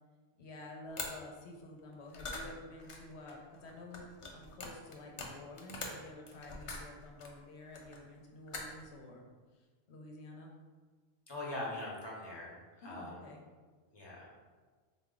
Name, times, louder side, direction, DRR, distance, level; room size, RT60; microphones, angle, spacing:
voice 1, 0.4-4.1 4.3-9.3 9.5-10.5 12.8-13.4, left 2 dB, 75° left, 1 dB, 0.9 m, -50 dB
sound 1, 1.0-1.1 2.0-7.3 7.7-8.2 8.5-8.9, left 3 dB, 50° left, 0.3 m, -44 dB
voice 2, 11.3-13.2 13.9-14.3, left 1 dB, 25° left, -4 dB, 0.9 m, -42 dB
3.9 x 2.3 x 3.7 m, 1.4 s
omnidirectional pair, 1.2 m